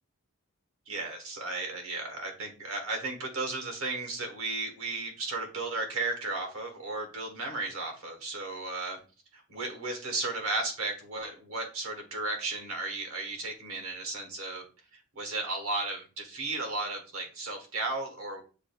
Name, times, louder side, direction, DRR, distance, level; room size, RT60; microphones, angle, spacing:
voice 1, 0.9-9.0 9.3-14.6 14.9-18.4, right 2 dB, 70° right, 4 dB, 1.3 m, -34 dB
7.2 x 2.6 x 2.3 m, 0.35 s
head